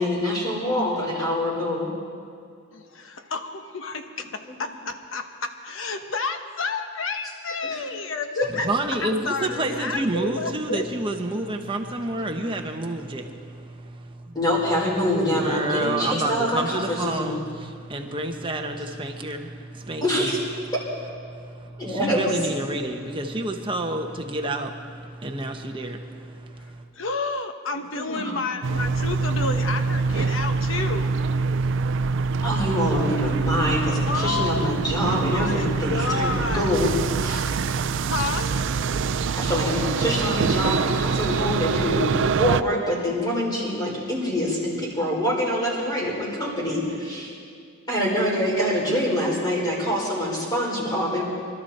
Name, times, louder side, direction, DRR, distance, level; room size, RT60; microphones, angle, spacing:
voice 1, 0.0-1.9 7.6-7.8 14.3-17.4 20.0-20.4 21.8-22.3 27.9-28.3 32.4-36.9 37.2-37.4 39.4-47.3 47.9-51.2, equal, 20° left, -4 dB, 4.7 m, -25 dB
voice 2, 2.7-10.8 26.9-31.2 34.0-36.9 38.1-38.7, left 3 dB, 65° left, 7 dB, 1.1 m, -30 dB
voice 3, 8.5-14.3 15.3-20.3 21.2-26.9, right 2 dB, 25° right, 3 dB, 1.1 m, -29 dB
sound 1, 28.6-42.6, right 4 dB, 60° right, 0.4 m, -25 dB
25.0 x 12.5 x 4.3 m, 2.3 s
head